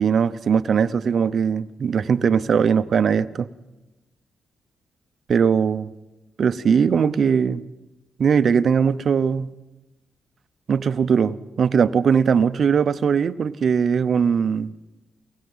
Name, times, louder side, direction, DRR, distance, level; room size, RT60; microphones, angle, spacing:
voice 1, 0.0-3.5 5.3-5.9 6.4-7.6 8.2-9.5 10.7-14.7, right 6 dB, 60° right, 13 dB, 0.8 m, -20 dB
23.5 x 19.5 x 5.6 m, 1.1 s
cardioid pair, 65°, 0 cm